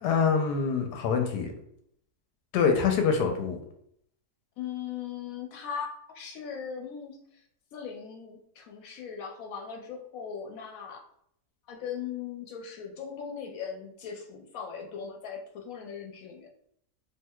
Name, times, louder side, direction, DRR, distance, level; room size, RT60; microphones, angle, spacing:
voice 1, 0.0-1.5 2.5-3.6, left 6 dB, 90° left, 4 dB, 1.2 m, -25 dB
voice 2, 4.6-7.2 7.7-11.0 11.7-16.5, left 7 dB, 70° left, 2 dB, 0.9 m, -39 dB
3.5 x 2.7 x 2.2 m, 0.71 s
omnidirectional pair, 1.7 m